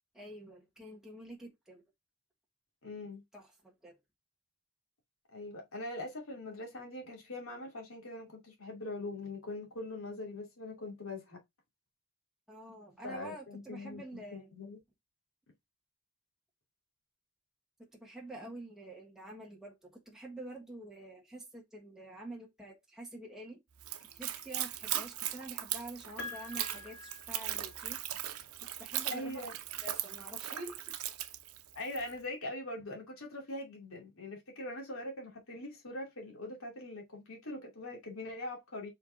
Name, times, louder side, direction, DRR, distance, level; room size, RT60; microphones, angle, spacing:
voice 1, 0.1-1.8 3.3-3.9 12.5-14.5 17.8-23.6 24.1-28.0 28.8-29.4 29.8-30.9, right 1 dB, ahead, 1.4 m, -47 dB
voice 2, 2.8-3.2 5.3-11.4 13.0-14.8 29.1-29.5 31.7-38.9, left 2 dB, 70° left, 2.7 m, -42 dB
Splash splatter / Trickle dribble, 23.8-32.1, right 12 dB, 90° right, 0.8 m, -39 dB
Piano, 26.2-28.2 29.5-29.6, left 3 dB, 50° left, 1.2 m, -46 dB
5.4 x 4.6 x 3.9 m
head